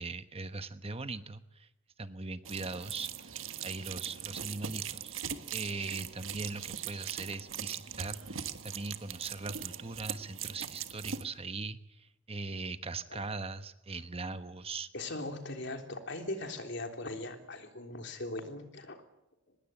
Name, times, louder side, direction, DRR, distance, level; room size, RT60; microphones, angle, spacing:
voice 1, 0.0-1.7 2.0-5.2 5.5-14.9, right 3 dB, 30° right, 11 dB, 1.1 m, -40 dB
sound 1, 2.4-11.2, right 8 dB, 90° right, 1.5 m, -41 dB
voice 2, 14.9-19.0, left 2 dB, 65° left, 5 dB, 3.5 m, -39 dB
24.5 x 20.5 x 9.0 m, 0.86 s
head